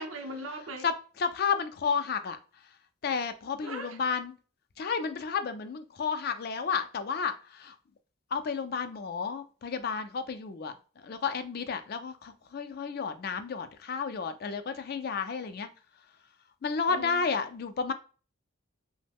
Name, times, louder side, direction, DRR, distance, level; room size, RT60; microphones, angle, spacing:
voice 1, 0.0-0.9 3.6-4.0 16.9-17.2, right 2 dB, 75° right, 0.6 m, -39 dB
voice 2, 0.8-2.4 3.0-4.3 4.8-7.8 8.3-10.7 11.0-15.7 16.6-17.9, left 5 dB, 45° left, 0.3 m, -32 dB
3.0 x 2.0 x 3.4 m
head